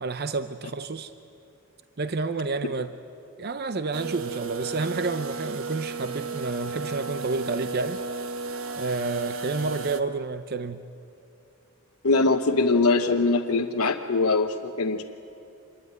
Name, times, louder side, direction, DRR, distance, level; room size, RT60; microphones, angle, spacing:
voice 1, 0.0-1.1 2.0-2.9 3.4-8.0 8.8-10.8, right 3 dB, 45° right, 10 dB, 0.7 m, -30 dB
sound 1, 3.9-10.0, right 4 dB, 65° right, 1.3 m, -34 dB
voice 2, 12.0-15.0, left 3 dB, 75° left, 1 dB, 1.0 m, -22 dB
27.0 x 22.0 x 9.6 m, 2.7 s
head